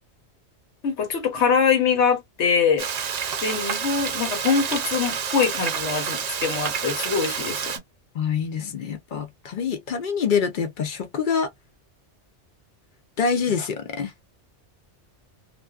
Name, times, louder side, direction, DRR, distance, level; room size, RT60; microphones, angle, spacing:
voice 1, 0.8-2.9 3.4-7.7, left 6 dB, 80° left, 1.2 m, -23 dB
Frying (food), 2.8-7.8, right 7 dB, 55° right, 0.4 m, -28 dB
voice 2, 8.2-11.5 13.2-14.1, left 6 dB, 55° left, 0.6 m, -25 dB
2.4 x 2.2 x 2.3 m
omnidirectional pair, 1.2 m